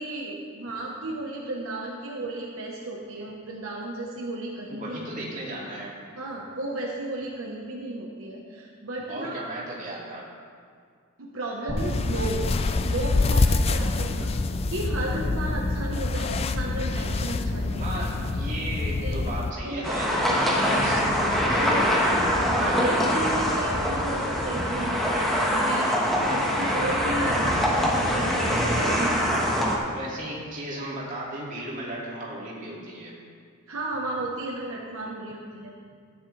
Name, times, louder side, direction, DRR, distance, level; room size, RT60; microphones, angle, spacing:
voice 1, 0.0-5.0 6.2-9.4 11.2-12.4 12.8-14.3 14.7-18.0 19.0-19.2 19.6-19.9 20.3-20.9 21.6-21.8 22.4-25.9 26.3-29.8 33.7-35.7, right 2 dB, 70° right, -2 dB, 1.2 m, -34 dB
voice 2, 4.7-6.0 9.1-10.3 17.8-22.1 26.2-26.7 29.9-33.1, right 1 dB, 35° right, -5 dB, 2.4 m, -36 dB
sound 1, 11.7-15.7, left 1 dB, 90° left, 2.9 m, -39 dB
sound 2, 11.8-19.5, left 3 dB, 30° left, 0.3 m, -26 dB
sound 3, 19.8-29.8, equal, ahead, 1.4 m, -24 dB
14.5 x 9.6 x 3.4 m, 2.1 s
head